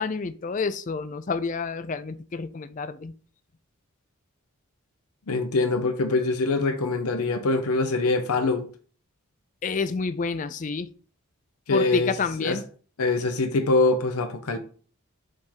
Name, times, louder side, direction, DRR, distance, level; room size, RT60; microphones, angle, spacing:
voice 1, 0.0-3.1 9.6-10.9 11.7-12.6, left 4 dB, 35° left, 0.4 m, -29 dB
voice 2, 5.3-8.7 11.7-12.1 12.4-12.6 13.0-14.6, left 3 dB, 85° left, 0.7 m, -24 dB
5.2 x 3.5 x 5.6 m
head